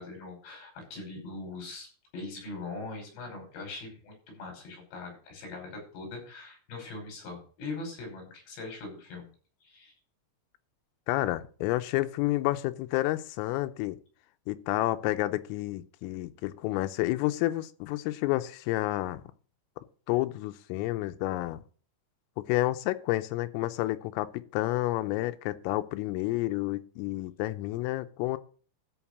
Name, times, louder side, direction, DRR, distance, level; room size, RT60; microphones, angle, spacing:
voice 1, 0.0-1.9 2.1-9.3 9.6-9.9, left 3 dB, 55° left, 2 dB, 7.6 m, -41 dB
voice 2, 11.1-14.0 14.5-19.2 20.1-21.6 22.5-28.4, left 17 dB, 85° left, 11 dB, 3.4 m, -30 dB
13.0 x 5.5 x 8.3 m, 0.42 s
omnidirectional pair, 5.9 m